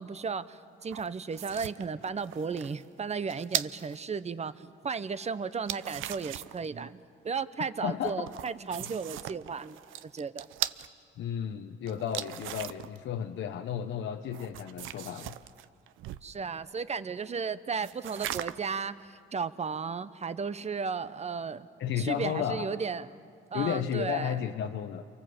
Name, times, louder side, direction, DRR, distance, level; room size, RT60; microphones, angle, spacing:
voice 1, 0.0-10.5 16.2-21.7 22.0-23.1 23.5-24.4, right 5 dB, 35° right, 14 dB, 1.0 m, -35 dB
sound 1, 0.8-4.0 5.5-6.7 8.0-10.9 11.9-13.0 14.3-16.3 17.8-18.7, right 13 dB, 85° right, 0.7 m, -38 dB
voice 2, 7.8-8.3 11.2-15.3 21.8-22.7 23.5-25.0, left 9 dB, 75° left, 5 dB, 1.1 m, -33 dB
28.5 x 24.0 x 7.9 m, 2.3 s
cardioid pair, 90°, 20 cm